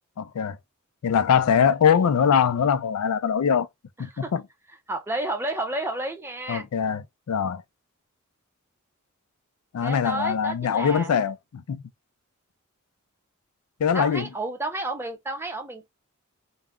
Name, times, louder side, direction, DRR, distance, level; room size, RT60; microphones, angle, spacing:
voice 1, 0.2-0.6 1.0-3.7 4.0-4.4 6.5-7.6 9.7-11.8 13.8-14.3, left 7 dB, 85° left, 0.4 m, -22 dB
voice 2, 4.0-4.3 4.9-6.7 9.8-11.1 13.9-15.9, right 2 dB, 10° right, 0.5 m, -31 dB
2.3 x 2.1 x 3.5 m
head